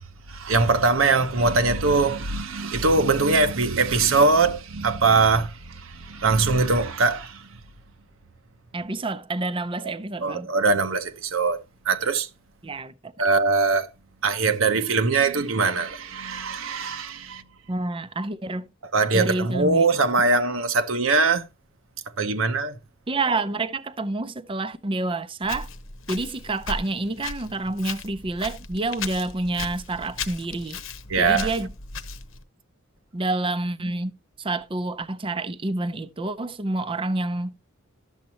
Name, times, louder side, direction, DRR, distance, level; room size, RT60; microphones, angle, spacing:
voice 1, 0.3-7.5 10.2-11.6 11.9-12.3 13.2-13.9 14.2-17.4 18.9-21.4 22.2-22.7 31.1-31.5, right 3 dB, 85° right, 0.9 m, -22 dB
voice 2, 8.7-10.5 12.6-13.1 17.7-18.7 19.1-20.0 23.1-25.7 26.1-30.8 31.2-31.7 33.1-34.1 34.4-37.5, right 2 dB, 25° right, 0.6 m, -28 dB
Walk footsteps, 25.4-32.4, left 4 dB, 80° left, 1.0 m, -37 dB
12.0 x 7.3 x 2.8 m
head